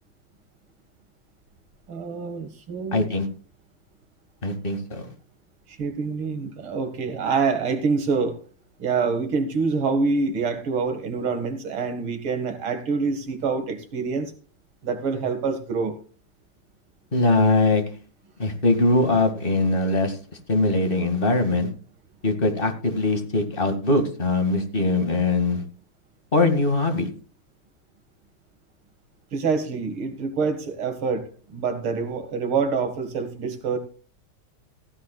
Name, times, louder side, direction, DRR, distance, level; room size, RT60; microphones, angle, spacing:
voice 1, 1.9-3.1 5.7-8.4 8.8-14.3 14.8-16.0 29.3-33.8, right 4 dB, 90° right, 7 dB, 2.8 m, -26 dB
voice 2, 2.9-3.3 4.4-5.1 17.1-17.8 18.4-20.2 20.5-21.7 22.2-25.6 26.3-27.1, left 2 dB, 25° left, 6 dB, 2.3 m, -21 dB
15.5 x 15.0 x 2.4 m, 0.37 s
omnidirectional pair, 2.2 m